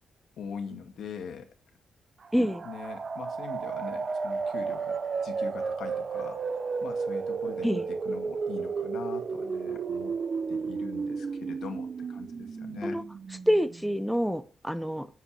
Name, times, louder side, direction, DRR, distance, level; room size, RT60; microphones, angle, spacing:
voice 1, 0.4-1.5 2.6-6.4 6.8-10.1 10.5-13.0, left 6 dB, 75° left, 2.1 m, -42 dB
sound 1, 2.2-13.9, right 5 dB, 35° right, 0.7 m, -33 dB
voice 2, 2.3-2.6 7.6-7.9 12.8-13.0 13.5-15.1, equal, ahead, 0.6 m, -27 dB
8.2 x 7.9 x 7.5 m
wide cardioid pair, 150°, 0 cm